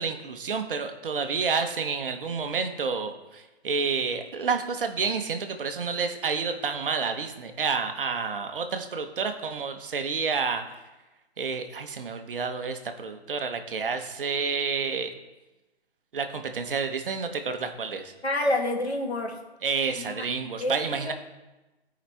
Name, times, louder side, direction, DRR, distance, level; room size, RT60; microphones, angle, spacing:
voice 1, 0.0-10.7 11.4-15.1 16.1-18.1 19.6-21.1, right 5 dB, 55° right, 7 dB, 1.0 m, -29 dB
voice 2, 18.2-19.4 20.0-20.3 20.6-21.1, left 1 dB, 80° left, 1 dB, 1.9 m, -28 dB
13.5 x 5.1 x 3.4 m, 1.1 s
figure-of-eight pair, 135°, 32 cm